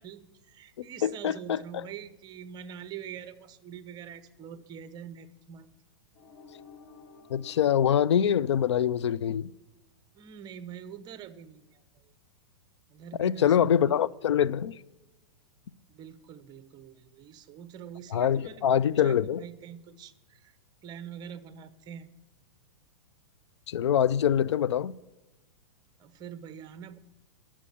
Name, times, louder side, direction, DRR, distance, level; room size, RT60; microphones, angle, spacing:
voice 1, 0.0-5.7 10.1-11.8 12.9-13.8 15.9-20.6 20.8-22.1 26.0-27.0, right 8 dB, 30° right, 0.9 m, -44 dB
voice 2, 0.8-1.8 7.3-9.5 13.2-14.7 18.1-19.4 23.7-24.9, left 9 dB, 75° left, 0.4 m, -25 dB
sound 1, 6.1-9.1, left 5 dB, 45° left, 2.8 m, -54 dB
11.0 x 7.4 x 8.3 m
hypercardioid pair, 120°, 15 cm